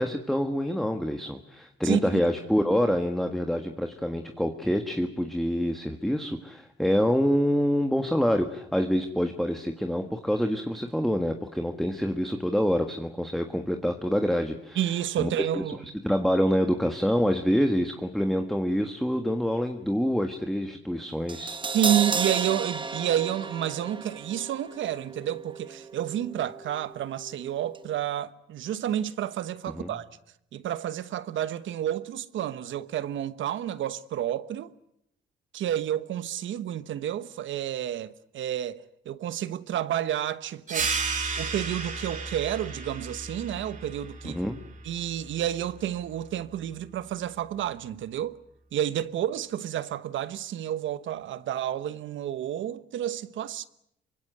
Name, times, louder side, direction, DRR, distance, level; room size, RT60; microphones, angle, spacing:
voice 1, 0.0-14.8 15.2-15.5 16.0-21.6 29.7-29.9 44.2-44.6, equal, ahead, 1.6 m, -26 dB
voice 2, 1.8-2.2 14.7-15.8 21.7-30.1 30.5-34.7 35.5-40.9 41.4-44.4 44.8-48.4 48.7-53.7, right 11 dB, 75° right, 1.2 m, -30 dB
Crash cymbal, 21.3-27.4 27.7-27.8, right 4 dB, 25° right, 1.2 m, -34 dB
sound 1, 40.7-45.8, right 4 dB, 40° right, 4.1 m, -34 dB
24.5 x 23.0 x 8.1 m
cardioid pair, 90°, 20 cm